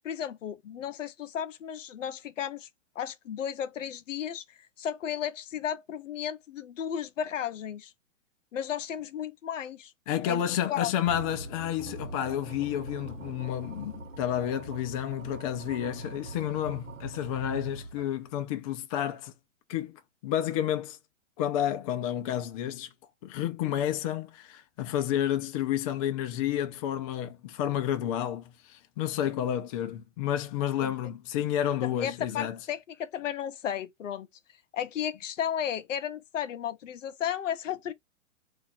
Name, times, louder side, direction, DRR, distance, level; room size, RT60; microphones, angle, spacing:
voice 1, 0.0-2.7 3.0-7.9 8.5-9.9 10.3-10.4 10.7-10.9 30.8-30.9 31.8-34.3 34.7-37.9, left 9 dB, 75° left, 0.6 m, -34 dB
voice 2, 10.1-19.3 19.7-21.0 21.4-22.9 23.2-32.6, left 11 dB, 30° left, 0.5 m, -30 dB
sound 1, 11.0-18.3, right 2 dB, 90° right, 1.2 m, -42 dB
2.6 x 2.5 x 4.1 m
hypercardioid pair, 130°, 38 cm